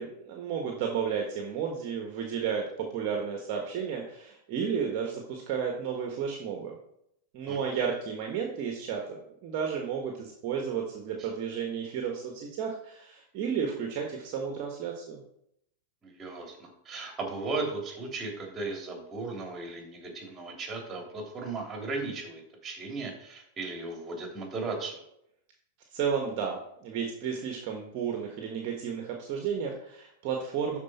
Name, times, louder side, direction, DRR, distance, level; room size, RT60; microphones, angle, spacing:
voice 1, 0.0-6.8 7.3-15.2 25.9-30.8, right 7 dB, 45° right, 2 dB, 1.4 m, -32 dB
voice 2, 7.5-7.8 11.2-11.3 16.0-25.0, right 3 dB, 25° right, 1 dB, 3.1 m, -36 dB
12.0 x 4.7 x 4.3 m, 0.76 s
figure-of-eight pair, 95°, 0 cm